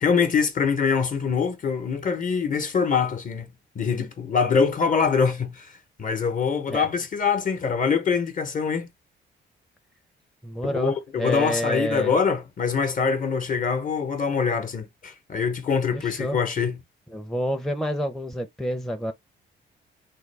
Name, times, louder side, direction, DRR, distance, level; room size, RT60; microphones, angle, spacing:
voice 1, 0.0-3.5 3.7-5.7 6.0-8.9 10.6-16.8, left 5 dB, 40° left, 0.9 m, -24 dB
voice 2, 10.4-12.1 15.9-16.4 17.1-19.1, equal, ahead, 0.6 m, -28 dB
3.6 x 2.2 x 3.3 m
cardioid pair, 90°, 20 cm